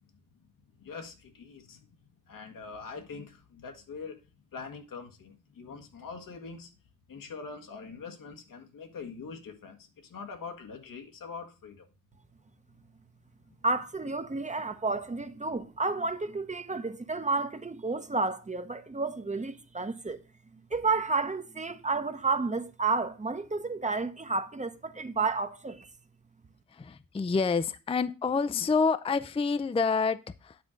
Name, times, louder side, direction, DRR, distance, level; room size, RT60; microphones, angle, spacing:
voice 1, 0.8-1.9 2.3-4.2 4.5-6.7 7.1-11.9, left 5 dB, 85° left, 1.7 m, -43 dB
voice 2, 13.6-20.2 20.7-25.9, right 3 dB, 20° right, 0.8 m, -31 dB
voice 3, 26.7-30.6, left 4 dB, 20° left, 0.4 m, -28 dB
9.4 x 3.7 x 6.4 m
cardioid pair, 85°, 32 cm